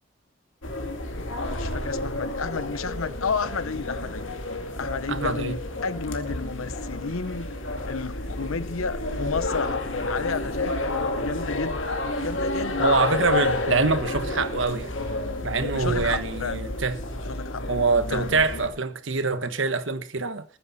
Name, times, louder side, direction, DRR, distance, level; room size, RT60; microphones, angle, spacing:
sound 1, 0.6-18.7, left 2 dB, 65° left, 2.4 m, -30 dB
voice 1, 1.1-4.3 4.8-7.5 7.9-10.8 11.2-11.9 12.2-12.8 15.7-16.6 17.3-17.7 18.1-18.3, left 5 dB, 90° left, 0.9 m, -32 dB
voice 2, 5.1-5.6 12.8-14.9 15.4-17.0 17.7-20.4, right 4 dB, 65° right, 1.3 m, -25 dB
20.0 x 9.9 x 4.2 m
head